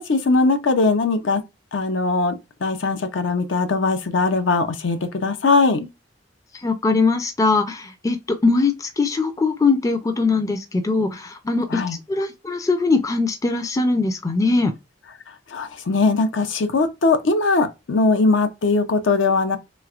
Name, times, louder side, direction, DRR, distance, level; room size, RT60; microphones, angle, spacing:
voice 1, 0.1-1.4 1.7-2.3 2.6-5.9 11.7-12.0 15.5-19.6, left 3 dB, 75° left, 0.6 m, -20 dB
voice 2, 6.5-11.8 12.1-14.7, left 3 dB, 20° left, 0.4 m, -21 dB
3.3 x 3.1 x 2.4 m
head